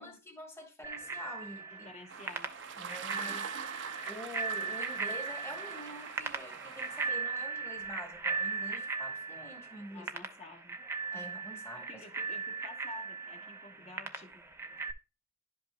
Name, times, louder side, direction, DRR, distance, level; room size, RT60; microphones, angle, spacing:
voice 1, 0.0-1.9 2.8-3.5 4.1-10.1 11.1-12.1, equal, 15° left, 1.3 m, -46 dB
Bicycle bell, 0.8-14.9, right 4 dB, 15° right, 0.5 m, -38 dB
voice 2, 1.7-2.5 3.0-3.4 9.9-10.8 11.1-11.4 11.9-14.4, left 3 dB, 35° left, 1.1 m, -51 dB
sound 1, 2.1-7.1, right 6 dB, 65° right, 0.6 m, -44 dB
11.5 x 5.3 x 2.2 m
head